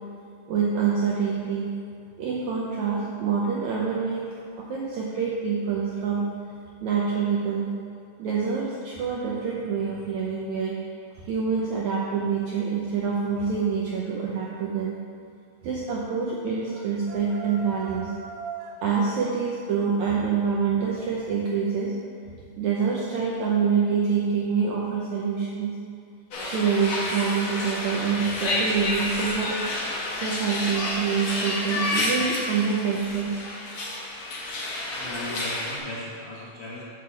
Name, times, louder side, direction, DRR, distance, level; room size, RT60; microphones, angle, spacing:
voice 1, 0.5-1.7 2.2-4.2 4.6-6.3 6.8-7.7 8.2-10.8 11.2-15.0 15.6-18.1 18.8-21.9 22.6-25.8 26.4-29.8 30.1-33.4, right 6 dB, 85° right, -4 dB, 1.6 m, -26 dB
sound 1, 16.7-18.8, right 5 dB, 70° right, 2.5 m, -39 dB
sound 2, 26.3-35.8, left 1 dB, 85° left, 1.1 m, -30 dB
voice 2, 34.9-36.9, left 1 dB, 60° left, -9 dB, 1.7 m, -38 dB
8.0 x 4.7 x 7.1 m, 2.5 s
omnidirectional pair, 4.4 m